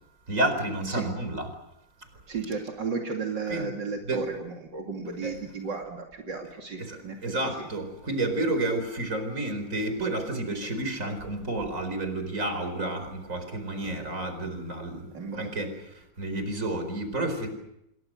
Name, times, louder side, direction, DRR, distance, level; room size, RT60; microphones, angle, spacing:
voice 1, 0.3-1.5 3.5-3.7 4.1-4.2 5.2-5.3 6.8-15.1 15.3-15.7 16.2-17.5, right 2 dB, 45° right, 8 dB, 4.9 m, -30 dB
voice 2, 2.3-7.7 15.1-15.5, right 4 dB, 75° right, 1 dB, 3.3 m, -34 dB
28.5 x 22.0 x 6.4 m, 0.82 s
omnidirectional pair, 2.0 m